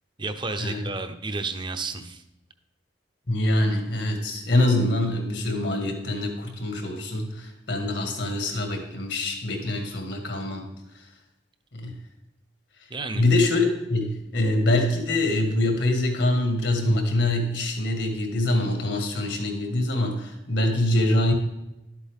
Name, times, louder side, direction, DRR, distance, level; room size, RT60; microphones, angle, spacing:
voice 1, 0.2-2.2 12.9-13.3, right 3 dB, 25° right, 8 dB, 0.8 m, -31 dB
voice 2, 3.3-10.7 11.7-11.9 13.1-21.3, left 1 dB, 75° left, 3 dB, 2.0 m, -24 dB
12.0 x 8.3 x 3.6 m, 0.93 s
head